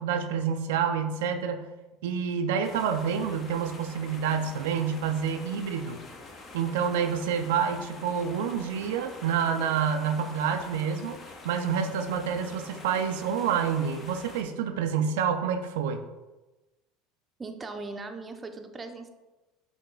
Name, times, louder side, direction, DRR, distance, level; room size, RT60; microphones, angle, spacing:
voice 1, 0.0-1.7 2.0-6.0 6.5-11.2 11.4-16.0, right 7 dB, 80° right, 6 dB, 0.3 m, -28 dB
sound 1, 2.6-14.4, left 3 dB, 35° left, 0.7 m, -46 dB
voice 2, 17.4-19.1, right 3 dB, 20° right, 6 dB, 0.5 m, -39 dB
5.5 x 2.2 x 3.8 m, 1.1 s
supercardioid pair, 95°, 0 cm